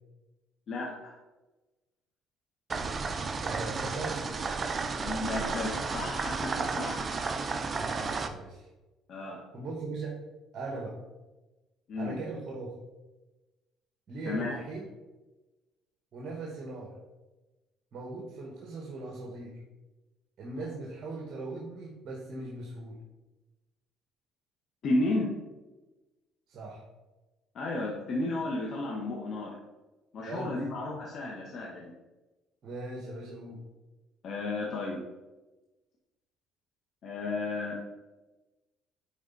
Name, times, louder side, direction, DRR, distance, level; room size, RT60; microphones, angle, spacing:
voice 1, 0.7-1.1 4.9-7.2 9.1-9.4 11.9-12.2 14.2-14.6 24.8-25.3 27.5-29.6 30.1-31.9 34.2-35.0 37.0-37.8, left 2 dB, 55° left, -3 dB, 1.3 m, -33 dB
sound 1, 2.7-8.3, right 4 dB, 30° right, 0.6 m, -32 dB
voice 2, 3.4-4.3 7.7-8.7 9.5-10.2 10.5-11.0 12.0-12.7 14.1-14.9 16.1-16.9 17.9-19.6 20.4-23.0 26.5-26.8 30.2-30.7 32.6-33.6, right 2 dB, 50° right, -2 dB, 1.5 m, -39 dB
10.0 x 4.0 x 4.0 m, 1.1 s
cardioid pair, 110°, 0 cm